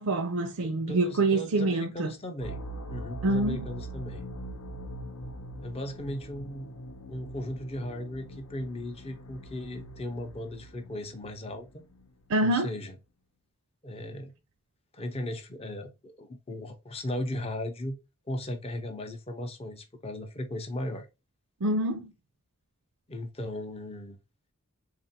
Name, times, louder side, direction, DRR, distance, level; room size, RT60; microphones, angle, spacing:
voice 1, 0.0-2.1 3.2-3.6 12.3-12.7 21.6-22.1, right 2 dB, 80° right, 0.5 m, -26 dB
voice 2, 0.6-2.6 2.9-4.2 5.6-6.7 7.1-11.8 12.4-13.0 13.8-14.3 14.9-18.0 18.3-21.1 23.1-24.2, left 1 dB, 30° left, 0.6 m, -37 dB
sound 1, 2.4-12.2, right 1 dB, 85° left, 0.8 m, -42 dB
3.6 x 2.4 x 4.1 m
head